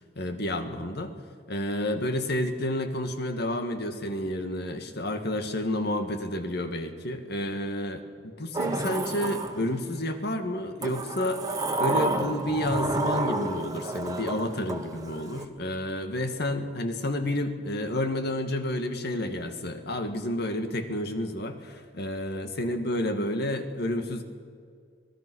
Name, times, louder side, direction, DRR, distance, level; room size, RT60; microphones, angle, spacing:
voice 1, 0.2-1.1 1.5-24.2, left 1 dB, 60° left, 7 dB, 2.0 m, -30 dB
Sliding door, 8.5-10.0 10.8-15.4, right 2 dB, 20° right, 1.7 m, -30 dB
25.5 x 18.5 x 6.4 m, 2.1 s
head